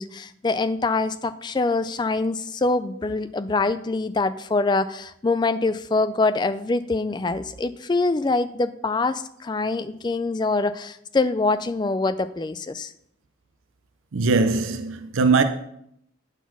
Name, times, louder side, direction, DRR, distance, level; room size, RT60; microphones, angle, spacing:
voice 1, 0.0-12.9, left 3 dB, 20° left, 0.3 m, -24 dB
voice 2, 14.1-15.4, right 4 dB, 90° right, 0.6 m, -20 dB
9.1 x 4.1 x 6.0 m
head